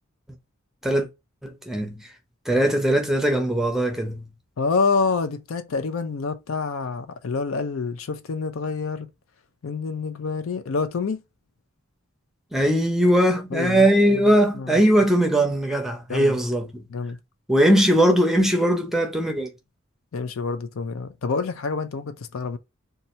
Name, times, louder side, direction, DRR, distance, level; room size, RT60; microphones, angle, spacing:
voice 1, 1.4-2.1 2.5-4.3 12.5-16.9 17.5-19.5, right 1 dB, ahead, 0.6 m, -20 dB
voice 2, 4.6-9.1 9.6-11.2 13.5-13.9 14.1-14.2 14.6-14.7 16.1-16.4 16.9-17.2 20.1-22.6, left 4 dB, 70° left, 0.5 m, -27 dB
2.7 x 2.3 x 4.1 m
head